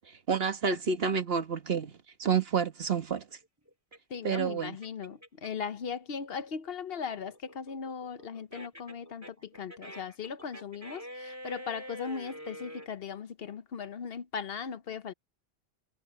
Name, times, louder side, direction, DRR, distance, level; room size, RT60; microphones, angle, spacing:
voice 1, 0.3-1.9 2.2-3.2 4.2-4.8, right 6 dB, 70° right, 1.5 m, -29 dB
sound 1, 2.6-5.7 6.1-12.9, equal, 15° right, 3.5 m, -46 dB
voice 2, 4.1-15.1, left 6 dB, 65° left, 1.1 m, -38 dB
omnidirectional pair, 1.1 m